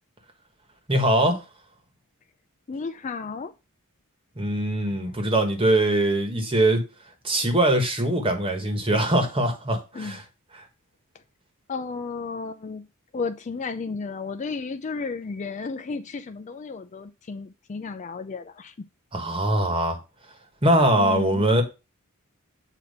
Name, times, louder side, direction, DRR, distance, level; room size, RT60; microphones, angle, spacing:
voice 1, 0.9-1.4 4.4-6.8 7.2-10.2 19.1-20.0 20.6-21.6, right 1 dB, 25° right, 1.4 m, -22 dB
voice 2, 2.7-3.5 9.9-10.2 11.7-12.9 13.1-18.7 20.9-21.4, left 4 dB, 35° left, 0.4 m, -33 dB
8.3 x 2.8 x 5.3 m
head